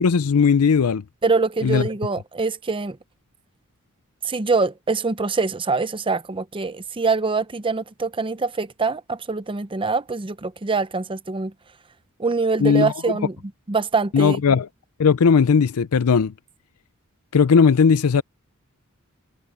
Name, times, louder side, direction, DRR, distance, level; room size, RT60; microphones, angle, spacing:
voice 1, 0.0-1.0 1.6-1.8 12.6-12.9 14.1-14.7 15.0-16.3 17.3-18.2, left 6 dB, 80° left, 0.5 m, -17 dB
voice 2, 1.2-3.0 4.2-11.5 12.2-13.4 13.7-14.4, right 4 dB, 25° right, 0.7 m, -24 dB
head